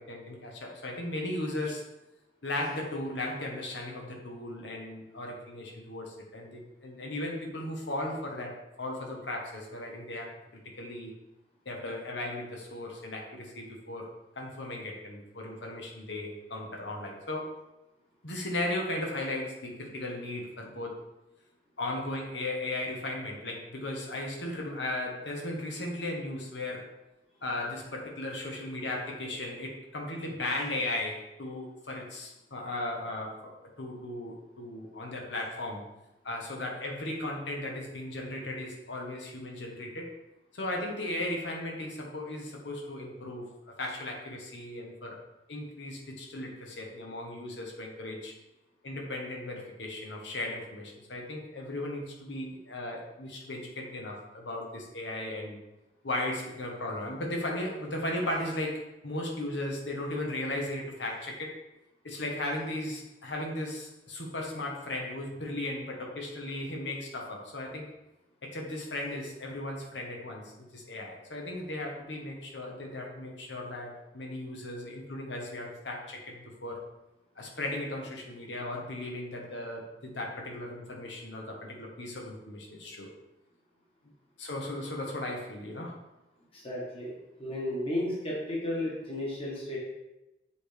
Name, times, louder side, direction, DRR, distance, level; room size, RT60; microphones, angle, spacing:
voice 1, 0.0-1.9 2.4-11.1 11.6-14.1 14.3-17.6 18.2-21.0 21.8-26.9 27.4-33.5 33.8-35.8 36.2-40.1 40.5-43.5 43.8-45.2 45.5-48.3 48.8-55.6 56.0-61.6 62.0-67.9 68.4-76.8 77.4-83.1 84.4-86.0, left 1 dB, 85° left, 0 dB, 1.4 m, -36 dB
voice 2, 86.5-87.1 87.4-89.8, left 1 dB, 30° left, -5 dB, 1.6 m, -33 dB
7.0 x 4.9 x 3.5 m, 0.96 s
head